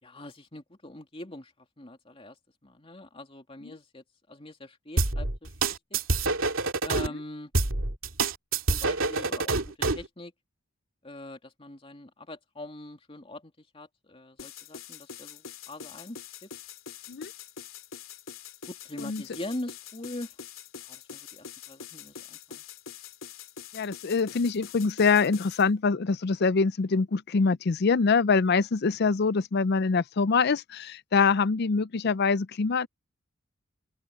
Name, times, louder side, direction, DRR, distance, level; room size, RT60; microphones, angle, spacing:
voice 1, 0.0-2.4 2.6-5.5 5.9-6.0 6.8-7.5 8.7-10.3 11.0-16.2 16.4-16.5 18.7-20.3 20.9-22.6, left 1 dB, 30° left, 2.8 m, -42 dB
sound 1, 5.0-7.1 7.5-10.1, right 3 dB, 80° right, 2.5 m, -26 dB
sound 2, 14.4-25.6, left 8 dB, 80° left, 2.8 m, -44 dB
voice 2, 23.7-32.9, left 4 dB, 55° left, 0.5 m, -24 dB
open air
head